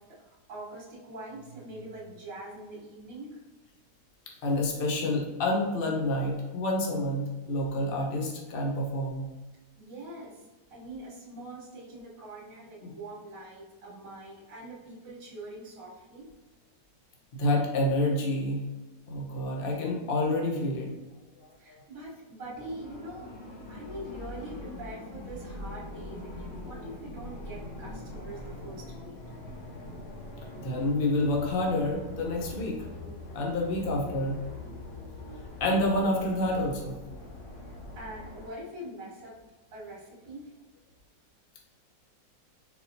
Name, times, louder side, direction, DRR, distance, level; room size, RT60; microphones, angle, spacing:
voice 1, 0.0-3.4 9.8-16.3 21.6-23.3 23.6-29.2 37.6-39.4 39.7-40.6, right 1 dB, 55° right, -6 dB, 1.6 m, -44 dB
voice 2, 4.4-9.3 12.8-12.9 17.3-18.6 19.1-20.9 21.4-21.8 30.6-32.9 33.3-34.4 35.6-37.0, left 1 dB, 40° left, -1 dB, 0.8 m, -28 dB
sound 1, 22.5-38.5, left 2 dB, 65° left, 1.4 m, -42 dB
4.5 x 4.1 x 2.6 m, 1.2 s
omnidirectional pair, 2.0 m